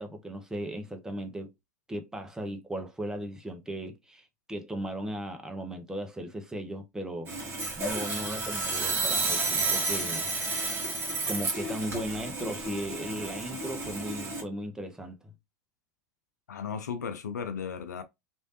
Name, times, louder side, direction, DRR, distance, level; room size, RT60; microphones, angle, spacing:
voice 1, 0.0-1.5 1.9-7.3 7.8-10.4 11.3-15.3, right 1 dB, 5° right, 0.7 m, -37 dB
Sawing, 7.3-14.4, right 3 dB, 25° right, 1.7 m, -31 dB
voice 2, 16.5-18.0, left 6 dB, 80° left, 0.5 m, -35 dB
3.1 x 2.6 x 2.7 m
hypercardioid pair, 95°, 9 cm